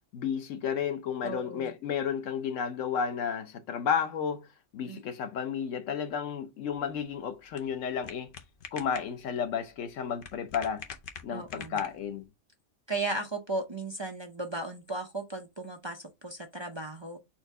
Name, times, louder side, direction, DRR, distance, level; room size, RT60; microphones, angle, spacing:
voice 1, 0.1-4.5 4.7-8.3 8.7-10.8 11.2-12.3, left 7 dB, 90° left, 1.1 m, -32 dB
voice 2, 1.2-1.8 4.8-5.0 11.3-11.8 12.9-17.2, right 2 dB, 30° right, 0.5 m, -36 dB
sound 1, 6.6-12.3, left 6 dB, 50° left, 0.8 m, -47 dB
4.4 x 2.6 x 4.6 m
omnidirectional pair, 1.3 m